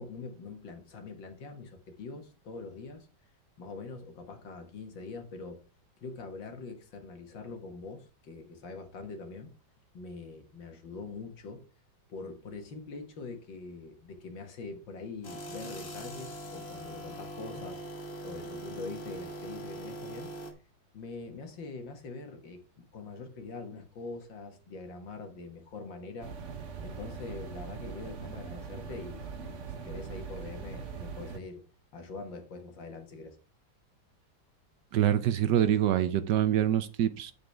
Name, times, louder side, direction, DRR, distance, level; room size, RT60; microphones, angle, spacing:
voice 1, 0.0-3.1 3.6-5.6 6.0-9.5 9.9-11.6 12.1-17.8 18.2-20.3 20.9-26.3 26.8-31.6 31.9-33.4, left 3 dB, 70° left, 2.2 m, -43 dB
sound 1, 15.2-20.5, right 1 dB, 35° left, 1.6 m, -42 dB
sound 2, 26.2-31.4, right 6 dB, 50° right, 1.1 m, -41 dB
voice 2, 34.9-37.3, right 11 dB, 70° right, 1.2 m, -25 dB
8.5 x 7.9 x 3.4 m
omnidirectional pair, 2.1 m